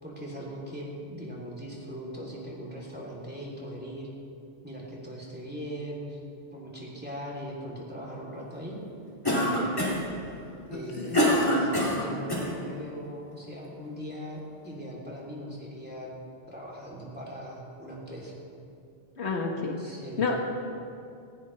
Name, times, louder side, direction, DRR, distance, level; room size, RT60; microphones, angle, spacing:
voice 1, 0.0-4.1 4.6-6.2 6.5-8.8 9.4-9.8 10.7-16.1 16.5-18.3 19.8-20.4, equal, 10° right, -4 dB, 3.0 m, -40 dB
Cough, 9.3-10.1 10.7-12.5, equal, 20° left, 2.4 m, -25 dB
voice 2, 10.7-11.2 19.2-19.7 20.2-20.4, left 4 dB, 85° left, 2 dB, 1.6 m, -30 dB
18.5 x 16.0 x 3.3 m, 2.5 s
omnidirectional pair, 1.1 m